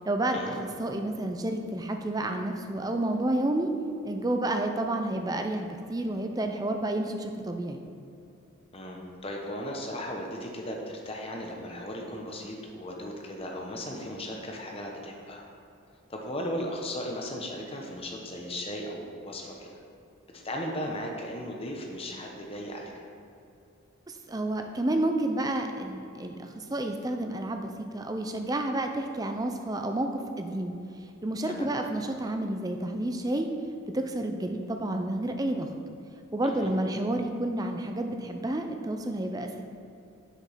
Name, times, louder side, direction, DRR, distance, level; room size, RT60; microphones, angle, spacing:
voice 1, 0.0-0.4 0.8-3.7 4.0-7.9 24.1-30.7 31.2-33.5 33.9-35.7 36.3-39.6, right 1 dB, 15° right, 5 dB, 0.4 m, -30 dB
voice 2, 8.7-15.4 16.1-19.8 20.3-23.1 31.5-31.7 36.4-36.7, equal, 25° left, 0 dB, 0.9 m, -36 dB
6.6 x 5.2 x 5.7 m, 2.6 s
head